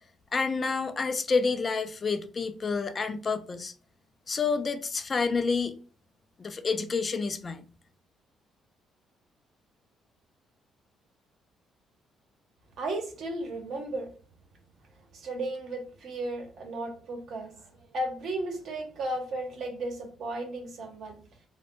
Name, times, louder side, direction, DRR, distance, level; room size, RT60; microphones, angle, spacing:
voice 1, 0.3-3.7 4.3-5.7 6.4-7.6, left 4 dB, 35° left, 0.3 m, -29 dB
voice 2, 12.8-14.1 15.1-17.5 17.9-21.2, right 1 dB, 65° right, 0.8 m, -34 dB
2.1 x 2.0 x 2.9 m
cardioid pair, 85°, 0 cm